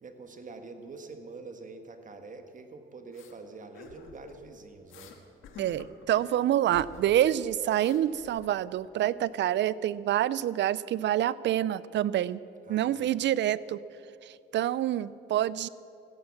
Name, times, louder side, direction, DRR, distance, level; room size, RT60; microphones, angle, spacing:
voice 1, 0.0-5.2 12.6-13.1, right 3 dB, 40° right, 7 dB, 1.6 m, -46 dB
sound 1, 3.1-3.3 3.7-4.4 4.9-5.2 5.4-6.4 6.7-7.2 7.5-8.9, left 5 dB, 85° left, 1.6 m, -49 dB
voice 2, 5.6-12.4 12.7-13.8 14.2-15.7, right 12 dB, 65° right, 19 dB, 0.5 m, -27 dB
15.5 x 10.5 x 7.4 m, 2.6 s
cardioid pair, 90°, 20 cm